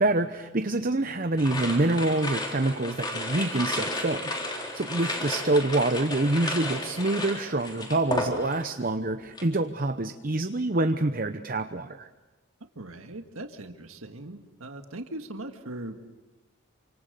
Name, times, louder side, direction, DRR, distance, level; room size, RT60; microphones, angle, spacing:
voice 1, 0.0-12.1, right 2 dB, 40° right, 8 dB, 0.8 m, -26 dB
sound 1, 1.4-8.8 9.1-9.5, left 2 dB, 20° left, 3.9 m, -33 dB
voice 2, 12.8-16.1, right 1 dB, 75° right, 6 dB, 1.8 m, -40 dB
29.0 x 25.5 x 6.8 m, 1.1 s
head